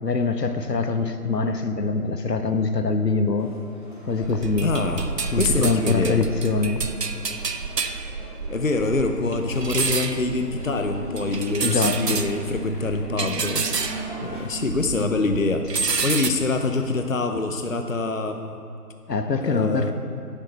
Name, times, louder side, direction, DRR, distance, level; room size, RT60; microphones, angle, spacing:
voice 1, 0.0-3.5 4.1-4.7 5.3-6.9 11.6-12.3 19.1-19.9, left 4 dB, 85° left, 8 dB, 1.2 m, -24 dB
sound 1, 3.4-14.4, left 1 dB, 30° left, 1.9 m, -43 dB
sound 2, 4.2-15.1 15.3-16.3, right 4 dB, 80° right, 1.0 m, -29 dB
voice 2, 4.6-6.2 8.5-18.6 19.4-19.9, left 3 dB, 55° left, 5 dB, 0.8 m, -25 dB
sound 3, 8.9-16.6, right 2 dB, 45° right, 2.6 m, -36 dB
11.0 x 11.0 x 4.1 m, 2.7 s
figure-of-eight pair, 175°, 48 cm